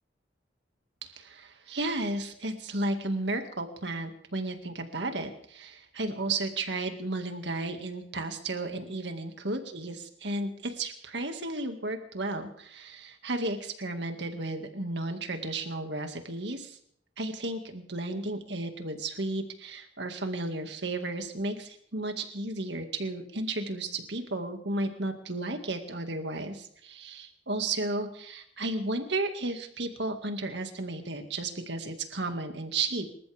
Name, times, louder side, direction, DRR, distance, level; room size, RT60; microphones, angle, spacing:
voice 1, 1.0-16.8 17.2-33.1, right 2 dB, 70° right, 6 dB, 2.1 m, -33 dB
27.0 x 14.0 x 3.5 m, 0.65 s
head